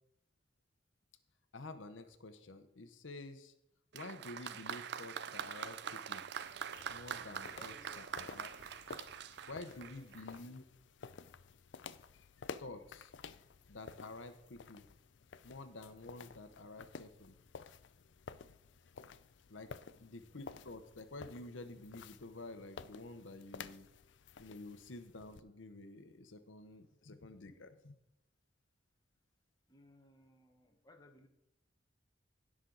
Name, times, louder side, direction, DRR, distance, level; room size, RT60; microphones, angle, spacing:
voice 1, 1.5-3.5 3.9-6.2 6.9-7.7 8.1-8.5 9.5-10.6 12.6-13.1 13.7-14.9 15.4-17.4 19.5-19.7 20.0-23.9 24.4-28.0, left 2 dB, 90° left, 9 dB, 0.9 m, -50 dB
Applause, 3.9-10.4, right 8 dB, 60° right, 0.5 m, -44 dB
sound 1, 6.4-25.4, left 5 dB, 70° left, 0.5 m, -53 dB
voice 2, 7.5-8.1 9.7-10.1 19.6-20.2 29.7-31.3, left 1 dB, 20° left, 4 dB, 1.2 m, -63 dB
16.0 x 6.3 x 3.9 m, 0.87 s
head